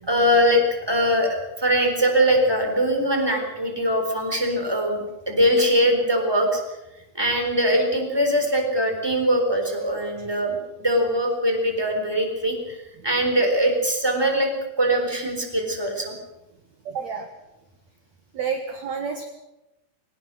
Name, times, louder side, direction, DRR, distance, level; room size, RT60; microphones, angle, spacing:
voice 1, 0.1-6.6 7.1-12.8 13.0-14.5 14.8-16.1, equal, 5° right, 4 dB, 3.7 m, -22 dB
voice 2, 16.9-17.3 18.3-19.2, right 6 dB, 55° right, 5 dB, 2.3 m, -29 dB
21.5 x 19.0 x 6.4 m, 0.97 s
omnidirectional pair, 4.5 m